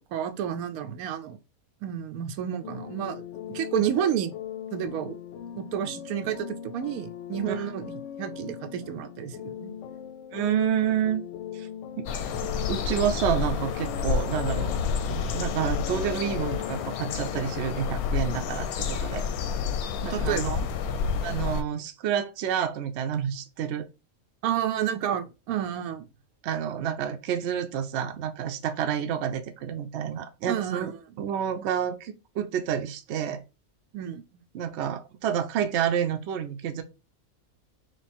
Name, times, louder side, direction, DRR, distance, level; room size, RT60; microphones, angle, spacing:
voice 1, 0.1-1.4 1.8-3.2 3.5-4.3 4.7-5.2 5.5-7.8 8.2-9.7 20.0-20.7 24.4-26.1 30.5-30.9 33.9-34.4, right 9 dB, 80° right, 1.0 m, -30 dB
sound 1, 2.6-17.9, left 9 dB, 65° left, 0.8 m, -40 dB
voice 2, 10.3-11.2 11.5-11.7 12.0-12.1 12.7-14.7 15.1-19.2 20.0-20.5 21.2-23.9 26.4-30.9 31.2-33.4 34.5-36.8, right 9 dB, 60° right, 0.8 m, -29 dB
sound 2, 12.1-21.6, left 6 dB, 85° left, 1.1 m, -29 dB
3.3 x 3.1 x 4.2 m
omnidirectional pair, 1.5 m